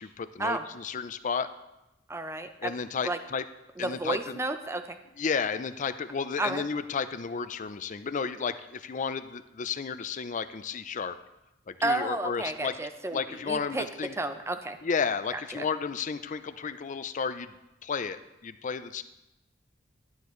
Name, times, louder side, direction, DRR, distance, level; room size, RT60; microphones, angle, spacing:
voice 1, 0.0-1.5 2.6-3.4 3.8-4.4 5.2-11.2 11.7-12.7 13.1-14.2 14.8-17.5 17.8-19.0, left 5 dB, 40° left, 12 dB, 0.5 m, -32 dB
voice 2, 2.1-2.7 3.0-3.2 3.8-5.0 6.4-6.6 11.8-13.8 14.2-14.8 15.3-15.7, right 2 dB, 15° right, 8 dB, 0.6 m, -32 dB
11.5 x 9.3 x 3.2 m, 0.94 s
head